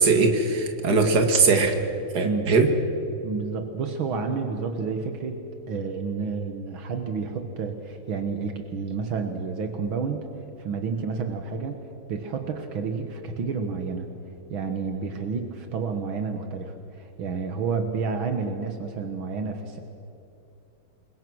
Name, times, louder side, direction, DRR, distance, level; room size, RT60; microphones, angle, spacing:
voice 1, 0.0-1.8 2.1-2.7, right 4 dB, 50° right, 5 dB, 2.5 m, -20 dB
voice 2, 3.2-5.4 5.7-10.3 10.6-11.8 12.1-14.1 14.5-19.8, right 5 dB, 75° right, 5 dB, 2.2 m, -30 dB
28.0 x 22.5 x 6.3 m, 2.8 s
omnidirectional pair, 2.2 m